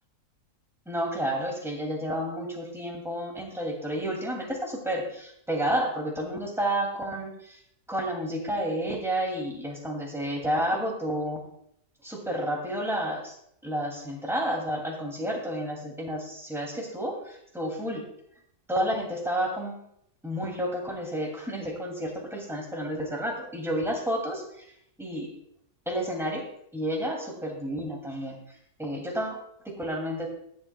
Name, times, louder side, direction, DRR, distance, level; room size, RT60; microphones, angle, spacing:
voice 1, 0.9-7.6 7.9-11.4 12.0-13.3 13.6-18.0 18.7-19.8 20.2-24.7 25.0-25.3 25.9-26.4 26.7-28.4 28.8-30.3, equal, ahead, -1 dB, 2.3 m, -30 dB
18.0 x 7.7 x 2.2 m, 0.72 s
omnidirectional pair, 1.8 m